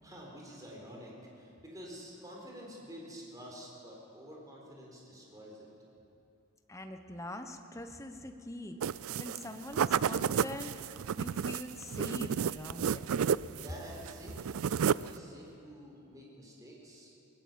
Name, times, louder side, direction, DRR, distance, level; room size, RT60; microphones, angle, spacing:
voice 1, 0.0-5.7 13.6-17.1, equal, 15° right, -2 dB, 4.3 m, -49 dB
voice 2, 6.7-13.1, left 1 dB, 15° left, 6 dB, 1.0 m, -43 dB
sound 1, 8.8-9.4 9.7-13.7 14.0-15.2, right 7 dB, 70° right, 0.4 m, -31 dB
20.0 x 19.0 x 7.7 m, 2.8 s
head